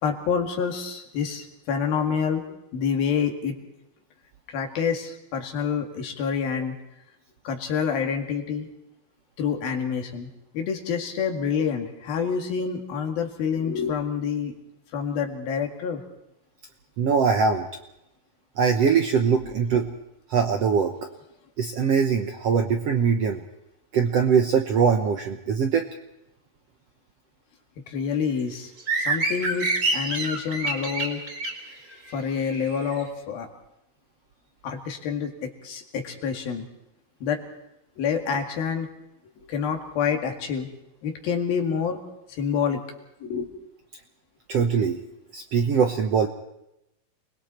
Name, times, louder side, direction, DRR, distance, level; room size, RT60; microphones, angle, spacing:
voice 1, 0.0-2.4 2.7-3.5 4.5-6.8 7.5-8.7 9.4-10.3 10.5-14.6 14.9-16.0 27.9-28.7 29.0-31.2 32.1-33.5 34.6-36.7 37.2-37.4 38.0-38.9 39.4-40.7 41.0-42.0 42.3-42.8 43.2-43.5, left 6 dB, 85° left, 3 dB, 4.0 m, -27 dB
voice 2, 17.0-17.6 18.6-19.9 20.3-20.9 21.6-23.4 23.9-25.9 44.5-45.0 45.3-46.3, right 6 dB, 70° right, 4 dB, 1.5 m, -22 dB
sound 1, 28.8-32.9, right 2 dB, 30° right, 3.7 m, -27 dB
29.0 x 21.0 x 4.4 m, 0.87 s
omnidirectional pair, 4.1 m